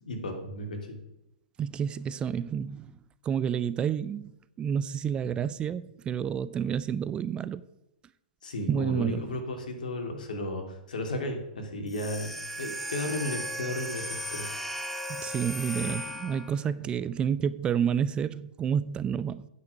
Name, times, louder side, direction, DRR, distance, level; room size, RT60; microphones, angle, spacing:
voice 1, 0.1-1.0 8.4-12.3 12.6-14.5, left 1 dB, 70° left, 2.9 m, -34 dB
voice 2, 1.6-2.9 3.2-4.3 4.6-7.6 8.7-9.3 15.1-19.5, right 8 dB, 20° right, 0.4 m, -29 dB
sound 1, 11.9-16.6, equal, 5° left, 0.9 m, -36 dB
9.4 x 5.6 x 8.1 m
hypercardioid pair, 120°, 5 cm